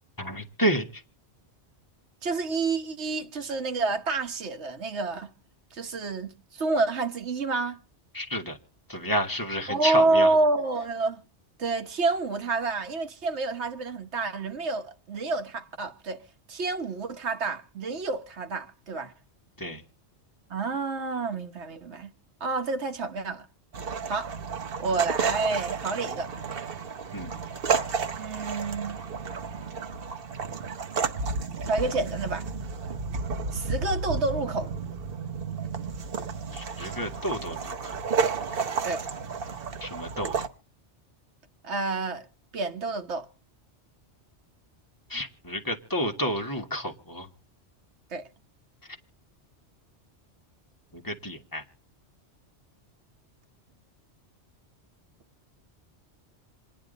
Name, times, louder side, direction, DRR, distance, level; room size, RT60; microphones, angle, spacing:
voice 1, 0.2-1.0 8.1-8.6 8.9-10.3 19.6-19.8 27.1-27.3 36.5-38.0 39.8-40.4 45.1-47.3 48.8-49.0 50.9-51.6, equal, 20° left, 1.8 m, -30 dB
voice 2, 2.2-5.3 5.7-7.8 9.7-11.2 11.6-16.2 16.5-19.1 20.5-22.1 22.4-23.4 24.1-24.3 24.8-26.3 28.2-29.1 31.6-32.5 33.5-34.7 38.8-39.0 41.6-42.3 42.5-43.3 48.1-48.3, right 3 dB, 75° right, 1.4 m, -28 dB
sound 1, 23.7-40.5, right 5 dB, 55° right, 1.1 m, -32 dB
27.0 x 10.0 x 4.0 m
omnidirectional pair, 1.2 m